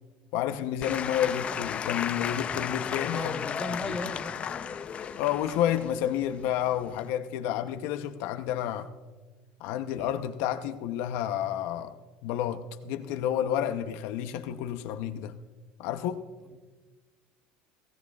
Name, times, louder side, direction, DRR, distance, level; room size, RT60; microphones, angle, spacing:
voice 1, 0.3-4.0 5.2-8.9 9.6-15.3 15.8-16.3, left 10 dB, 75° left, 0.7 m, -30 dB
Applause / Crowd, 0.8-7.1, left 7 dB, 30° left, 0.5 m, -34 dB
voice 2, 3.1-4.7, left 1 dB, 5° left, 1.1 m, -37 dB
19.0 x 16.5 x 2.3 m
cardioid pair, 135°, 4 cm